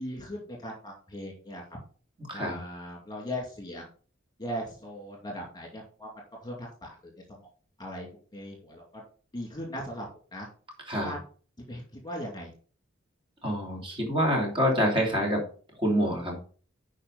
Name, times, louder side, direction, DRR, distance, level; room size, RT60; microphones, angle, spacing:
voice 1, 0.0-1.6 2.3-3.9 4.4-6.1 6.4-7.5 7.8-8.1 8.3-9.0 9.3-10.1 10.3-10.5 10.9-11.2 11.6-12.5, equal, 20° left, -1 dB, 2.3 m, -38 dB
voice 2, 13.4-15.4 15.8-16.4, equal, 25° right, -1 dB, 3.0 m, -26 dB
10.5 x 5.0 x 4.0 m, 0.40 s
head